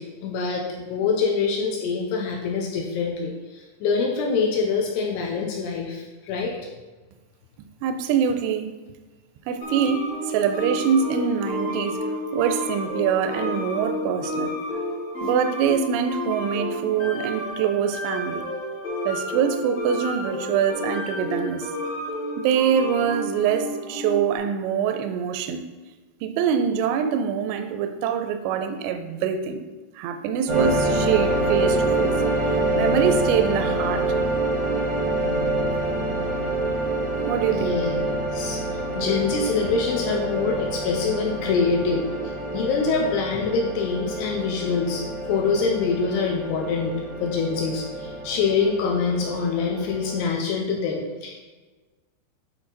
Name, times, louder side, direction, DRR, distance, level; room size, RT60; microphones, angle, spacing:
voice 1, 0.0-3.3 3.8-6.6 37.5-37.9 38.3-38.6 39.0-42.0 42.5-47.0 47.2-51.4, left 5 dB, 85° left, 0 dB, 2.5 m, -25 dB
voice 2, 7.8-8.7 9.5-12.0 12.3-14.6 15.2-18.4 19.1-21.7 22.4-25.6 26.2-29.6 30.0-32.2 32.8-34.2 37.3-37.8, right 8 dB, 85° right, 8 dB, 2.5 m, -24 dB
sound 1, 9.6-24.4, equal, 60° left, 1.7 m, -30 dB
sound 2, 30.5-50.3, right 2 dB, 65° right, 0.9 m, -26 dB
8.9 x 4.1 x 4.0 m, 1.3 s
omnidirectional pair, 5.5 m